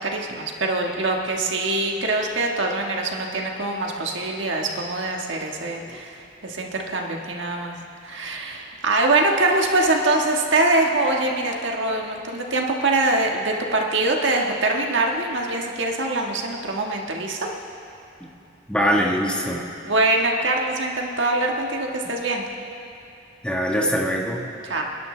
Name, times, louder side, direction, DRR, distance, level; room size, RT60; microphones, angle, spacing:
voice 1, 0.0-7.7 8.0-17.5 19.9-22.4 24.6-24.8, right 2 dB, 70° right, 1 dB, 1.5 m, -23 dB
voice 2, 18.7-19.7 23.4-24.5, equal, 5° left, -2 dB, 1.4 m, -23 dB
29.0 x 11.0 x 3.3 m, 2.8 s
head